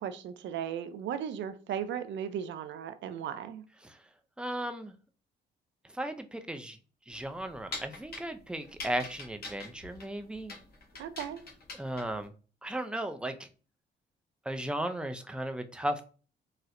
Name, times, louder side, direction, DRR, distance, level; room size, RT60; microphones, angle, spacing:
voice 1, 0.0-3.6 11.0-11.4, right 9 dB, 65° right, 0.4 m, -36 dB
voice 2, 4.4-4.9 6.0-6.8 7.1-10.5 11.8-12.3 12.6-13.4 14.5-16.0, right 1 dB, 5° right, 0.4 m, -35 dB
sound 1, 7.1-12.3, left 3 dB, 50° left, 1.1 m, -44 dB
4.2 x 2.0 x 2.4 m
cardioid pair, 90°, 20 cm